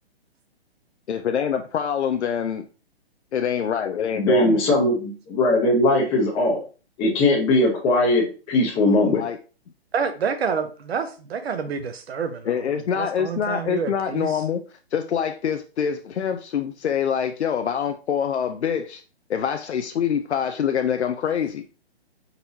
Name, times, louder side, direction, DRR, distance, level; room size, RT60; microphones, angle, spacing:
voice 1, 1.1-2.7 3.3-4.6 9.1-9.4 12.5-14.6 14.9-19.0 19.3-21.6, left 8 dB, 90° left, 7 dB, 0.5 m, -25 dB
voice 2, 4.2-6.6 7.0-9.2, left 1 dB, 15° left, -3 dB, 0.8 m, -20 dB
voice 3, 9.9-12.5 12.9-14.3, right 6 dB, 70° right, 8 dB, 0.8 m, -28 dB
4.4 x 4.0 x 2.6 m, 0.35 s
hypercardioid pair, 140°, 33 cm